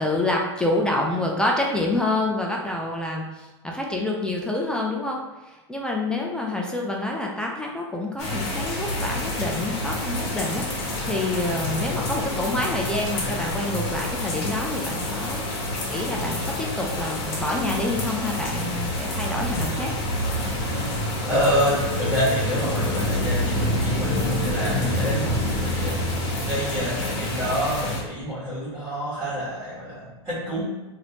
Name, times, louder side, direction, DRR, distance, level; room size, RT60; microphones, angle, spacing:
voice 1, 0.0-15.5 15.9-19.9, left 2 dB, 5° left, -1 dB, 0.4 m, -27 dB
sound 1, 8.2-28.0, left 1 dB, 50° left, 1.2 m, -27 dB
sound 2, 17.6-28.1, right 3 dB, 60° right, 0.8 m, -43 dB
voice 2, 21.2-26.0 26.4-30.6, equal, 20° right, -11 dB, 1.5 m, -27 dB
3.2 x 2.6 x 2.9 m, 1.1 s
hypercardioid pair, 120°, 15 cm